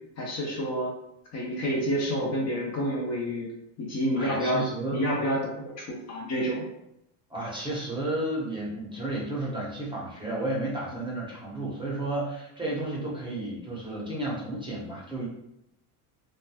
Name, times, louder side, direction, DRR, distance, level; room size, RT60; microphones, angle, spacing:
voice 1, 0.2-0.9 1.3-3.5 3.8-4.7 4.9-6.7 10.9-11.1, equal, 35° left, -2 dB, 0.7 m, -29 dB
voice 2, 4.2-5.0 7.3-15.3, right 1 dB, 10° right, -5 dB, 0.7 m, -32 dB
3.1 x 2.2 x 2.2 m, 0.81 s
supercardioid pair, 95°, 46 cm